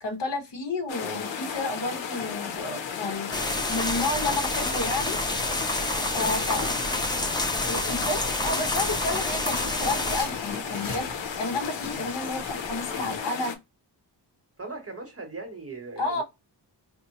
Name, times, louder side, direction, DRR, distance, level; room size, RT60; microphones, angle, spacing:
voice 1, 0.0-3.4 3.7-5.2 6.1-6.7 7.7-13.5 16.0-16.2, left 2 dB, 70° left, 1.2 m, -31 dB
sound 1, 0.9-13.6, left 7 dB, 90° left, 0.8 m, -34 dB
sound 2, 3.3-10.2, left 1 dB, 10° left, 0.5 m, -28 dB
sound 3, 4.0-13.2, left 2 dB, 50° left, 1.1 m, -44 dB
voice 2, 5.9-6.7 12.7-13.0 14.6-16.2, right 3 dB, 30° right, 0.9 m, -40 dB
4.2 x 2.0 x 2.8 m
wide cardioid pair, 175°, 44 cm